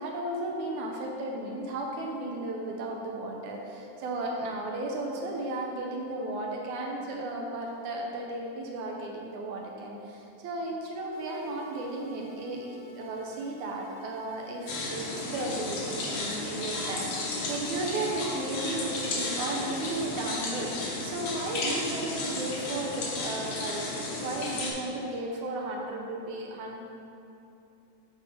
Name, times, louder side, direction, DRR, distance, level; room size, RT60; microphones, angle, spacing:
voice 1, 0.0-17.1 17.5-26.8, right 2 dB, 80° right, -1 dB, 2.1 m, -34 dB
sound 1, 11.1-20.1, right 3 dB, 85° left, 1.1 m, -52 dB
sound 2, 14.7-24.7, left 2 dB, 65° left, 1.5 m, -33 dB
9.0 x 3.2 x 4.9 m, 2.7 s
omnidirectional pair, 3.5 m